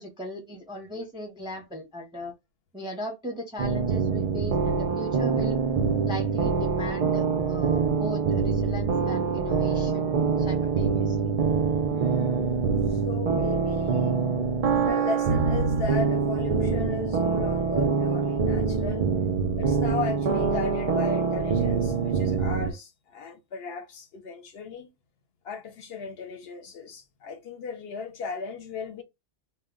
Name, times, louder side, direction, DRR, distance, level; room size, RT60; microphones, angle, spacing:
voice 1, 0.0-2.3 2.7-5.6 6.1-11.3, equal, 5° right, 0.5 m, -38 dB
sound 1, 3.6-22.7, right 5 dB, 65° right, 0.3 m, -25 dB
voice 2, 11.9-14.2 14.8-19.1 19.6-24.9 25.4-29.0, left 5 dB, 65° left, 0.8 m, -36 dB
2.1 x 2.1 x 3.5 m
omnidirectional pair, 1.2 m